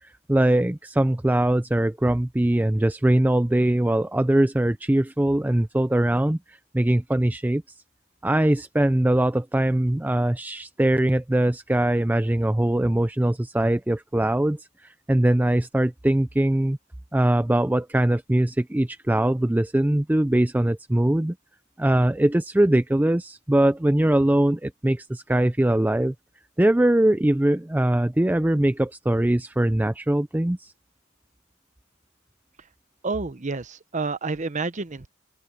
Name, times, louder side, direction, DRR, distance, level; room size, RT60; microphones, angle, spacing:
voice 1, 0.0-7.6 8.2-16.8 17.1-21.3 21.8-26.1 26.6-30.7, right 1 dB, 10° right, 0.3 m, -22 dB
voice 2, 33.0-35.1, right 3 dB, 35° right, 0.8 m, -29 dB
open air
head